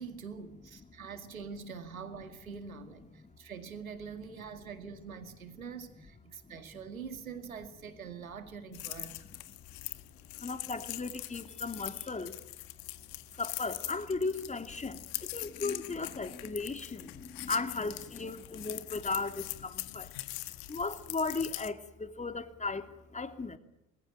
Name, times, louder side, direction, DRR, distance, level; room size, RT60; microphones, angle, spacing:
voice 1, 0.0-9.2 10.4-10.5, right 6 dB, 90° right, 2.1 m, -44 dB
sound 1, 8.7-21.7, left 19 dB, 60° left, 1.8 m, -43 dB
voice 2, 10.4-12.4 13.4-20.1 20.7-23.6, left 3 dB, 15° left, 3.1 m, -36 dB
28.0 x 21.0 x 9.0 m
hypercardioid pair, 70°, 40 cm